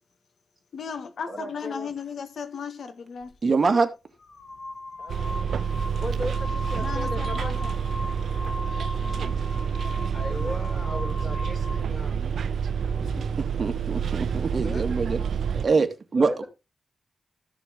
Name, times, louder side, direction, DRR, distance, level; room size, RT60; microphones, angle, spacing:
voice 1, 0.7-3.3 6.8-7.7 8.9-9.3 13.0-13.3, left 6 dB, 75° left, 1.7 m, -36 dB
voice 2, 1.3-1.9 5.0-5.4 5.9-7.6 10.1-12.2 14.6-14.9 16.1-16.5, left 1 dB, 25° left, 5.8 m, -36 dB
sound 1, 3.2-3.4 4.2-11.9, left 2 dB, 55° left, 1.8 m, -38 dB
voice 3, 3.4-3.9 13.4-15.2 15.5-16.4, right 4 dB, 45° right, 2.1 m, -24 dB
Bus, 5.1-15.7, right 7 dB, 80° right, 0.6 m, -28 dB
14.0 x 6.8 x 3.7 m
wide cardioid pair, 100°, 0 cm